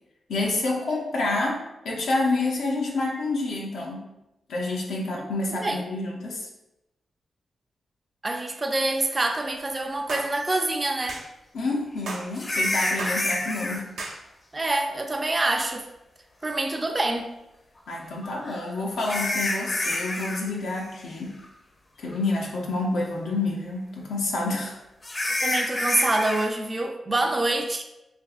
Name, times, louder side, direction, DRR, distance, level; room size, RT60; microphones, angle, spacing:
voice 1, 0.3-4.1 4.5-6.5 11.5-13.9 17.9-21.4 22.0-24.8, left 2 dB, 90° left, -2 dB, 0.5 m, -28 dB
voice 2, 5.5-5.8 8.2-11.2 14.5-15.9 16.4-17.3 25.4-27.8, right 2 dB, 25° right, 4 dB, 0.3 m, -26 dB
sound 1, 10.1-10.3 11.1-11.3 12.1-12.3 13.0-13.2 14.0-14.2, right 2 dB, 90° right, 0.5 m, -34 dB
sound 2, 10.5-10.6 12.3-13.8 15.6-15.7 18.2-20.4 20.7-21.0 21.4-21.5 22.1-22.2 25.0-26.5, left 1 dB, 35° left, 0.5 m, -28 dB
3.3 x 2.7 x 2.4 m, 0.94 s
cardioid pair, 75°, 0 cm